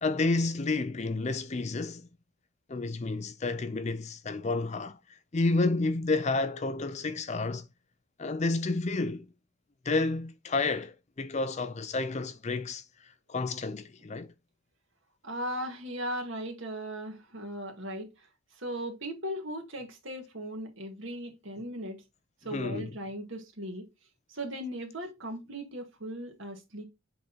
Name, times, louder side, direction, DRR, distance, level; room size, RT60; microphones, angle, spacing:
voice 1, 0.0-2.1 2.7-7.7 8.2-9.3 9.8-14.3 22.5-22.9, left 3 dB, 30° left, 0.5 m, -30 dB
voice 2, 15.2-18.3 18.6-22.0 22.4-23.9 24.3-26.8, equal, 65° right, 2.1 m, -37 dB
7.9 x 3.7 x 4.1 m
head